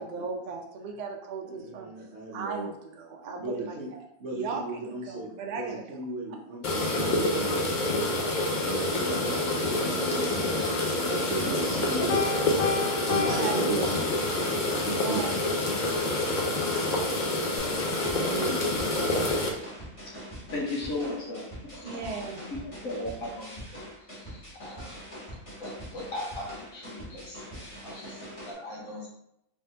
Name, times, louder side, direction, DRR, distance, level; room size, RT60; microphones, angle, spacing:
voice 1, 0.0-1.9 2.3-4.0 4.3-6.0 11.7-12.6 13.3-13.5 13.8-14.2 15.0-15.3 21.8-22.5, right 4 dB, 75° right, 2 dB, 0.4 m, -37 dB
voice 2, 1.4-2.7 3.4-3.9 4.2-8.1 8.6-12.3 13.0-14.1 14.8-15.3 17.9-18.7, right 2 dB, 55° right, -3 dB, 0.9 m, -35 dB
sound 1, 6.6-19.5, left 2 dB, 50° left, 0.5 m, -27 dB
Piano, 12.1-14.5, left 5 dB, 90° left, 1.1 m, -31 dB
sound 2, 17.6-28.5, equal, 25° left, 1.3 m, -43 dB
voice 3, 20.5-24.9 25.6-29.1, left 2 dB, 70° left, -3 dB, 1.5 m, -38 dB
3.5 x 3.3 x 2.8 m, 0.77 s
omnidirectional pair, 1.5 m